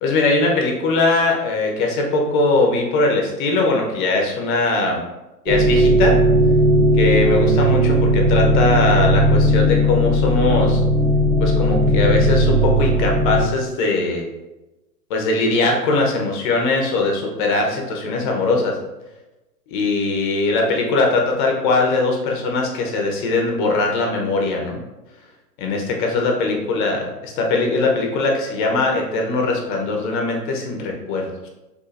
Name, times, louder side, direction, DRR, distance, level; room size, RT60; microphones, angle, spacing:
voice 1, 0.0-5.0 5.4-6.2 6.9-10.8 11.4-14.3 15.1-18.8 19.7-24.8 25.6-31.5, left 3 dB, 30° left, 1 dB, 0.8 m, -20 dB
sound 1, 5.5-13.4, equal, 45° right, 1.0 m, -16 dB
6.8 x 2.7 x 2.5 m, 1.0 s
hypercardioid pair, 135°, 49 cm